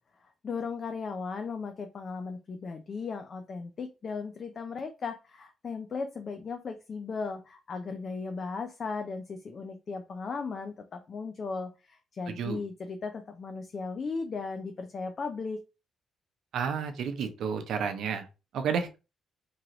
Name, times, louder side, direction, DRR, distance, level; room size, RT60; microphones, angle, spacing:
voice 1, 0.2-15.6, left 4 dB, 45° left, 6 dB, 0.4 m, -36 dB
voice 2, 16.5-18.3 18.5-19.0, right 6 dB, 70° right, 7 dB, 0.6 m, -31 dB
3.0 x 2.5 x 2.9 m, 0.29 s
cardioid pair, 90°, 0 cm